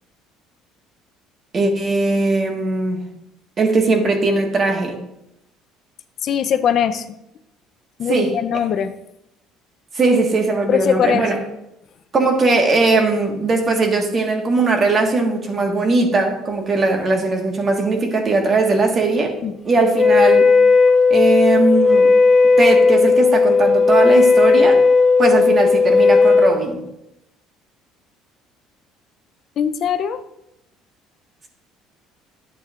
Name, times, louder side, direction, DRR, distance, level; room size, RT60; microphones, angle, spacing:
voice 1, 1.5-3.0 3.6-5.0 8.1-8.3 9.9-11.4 12.1-19.4 19.6-20.5 21.1-22.1 22.6-24.8 25.2-26.8, right 3 dB, 35° right, 3 dB, 1.5 m, -19 dB
voice 2, 6.2-7.1 8.0-8.9 10.7-11.3 19.4-19.6 29.6-30.2, left 8 dB, 50° left, 10 dB, 0.5 m, -20 dB
Wind instrument woodwind instrument, 19.9-26.6, left 4 dB, 5° left, 2.2 m, -14 dB
11.0 x 8.2 x 2.5 m, 0.85 s
cardioid pair, 115°, 0 cm